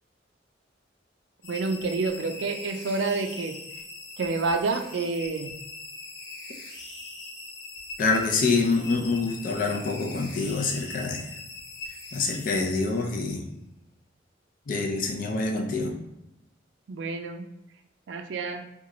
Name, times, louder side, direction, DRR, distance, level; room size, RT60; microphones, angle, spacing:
sound 1, 1.4-13.3, left 3 dB, 75° left, 0.8 m, -41 dB
voice 1, 1.5-3.6 4.2-5.5 16.9-17.5 18.1-18.6, right 3 dB, 70° right, 6 dB, 0.4 m, -28 dB
voice 2, 8.0-11.3 12.1-13.4 14.7-16.0, left 3 dB, 45° left, 2 dB, 0.5 m, -26 dB
3.0 x 2.3 x 3.6 m, 0.91 s
head